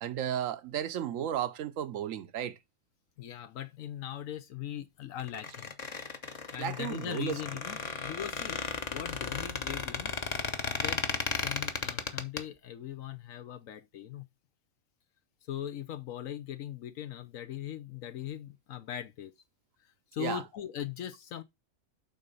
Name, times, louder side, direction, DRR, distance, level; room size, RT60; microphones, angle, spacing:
voice 1, 0.0-2.6 6.6-7.4 20.2-20.4, right 10 dB, 80° right, 1.1 m, -34 dB
voice 2, 3.2-5.7 6.5-8.6 8.9-10.1 10.8-11.0 11.4-14.2 15.5-19.3 19.8-21.4, left 11 dB, 80° left, 1.1 m, -40 dB
Squeak, 5.2-12.4, left 4 dB, 35° left, 0.9 m, -35 dB
9.0 x 3.9 x 5.3 m
omnidirectional pair, 1.4 m